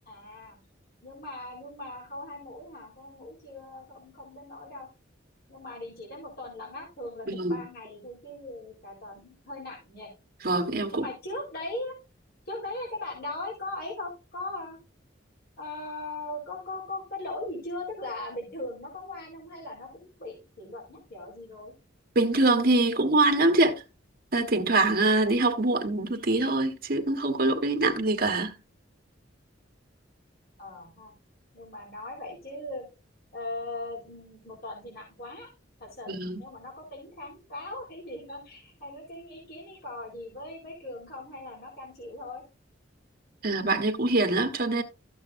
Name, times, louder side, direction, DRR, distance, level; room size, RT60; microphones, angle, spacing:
voice 1, 0.1-0.6 1.0-4.9 5.5-10.1 10.9-11.9 12.5-14.8 15.6-21.7 30.6-31.1 31.5-32.8 33.3-35.5 35.8-42.4, left 2 dB, 55° left, 4.0 m, -39 dB
voice 2, 7.3-7.6 10.4-11.0 22.1-23.7 24.3-28.6 36.1-36.4 43.4-44.8, right 2 dB, 50° right, 1.4 m, -24 dB
13.5 x 7.2 x 2.6 m
head